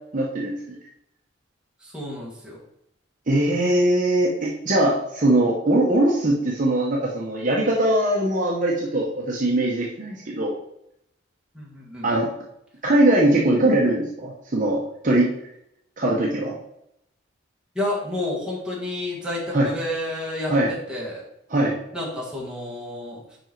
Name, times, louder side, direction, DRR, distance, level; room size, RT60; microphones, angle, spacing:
voice 1, 0.1-0.8 3.3-10.5 12.0-12.3 12.8-15.3 16.0-16.6 19.5-19.7 20.5-20.7 21.5-21.7, right 1 dB, 40° right, -3 dB, 0.8 m, -21 dB
voice 2, 1.8-2.6 11.5-12.2 17.8-20.5 20.9-21.2 21.9-23.2, left 1 dB, 5° right, -5 dB, 1.7 m, -30 dB
5.2 x 5.1 x 4.5 m, 0.78 s
head